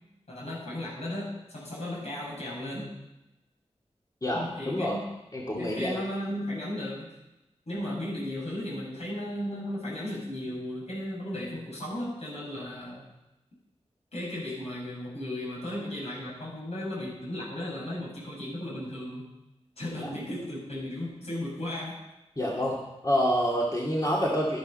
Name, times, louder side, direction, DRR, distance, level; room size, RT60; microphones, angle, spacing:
voice 1, 0.3-3.0 4.3-5.1 5.6-7.1 7.7-13.1 14.1-19.3 19.8-22.0, left 1 dB, 65° left, -4 dB, 5.9 m, -35 dB
voice 2, 4.2-5.0 5.3-6.0 22.4-22.8 23.0-24.6, equal, 30° left, -3 dB, 2.2 m, -27 dB
12.5 x 10.5 x 5.4 m, 0.97 s
wide cardioid pair, 90°, 12 cm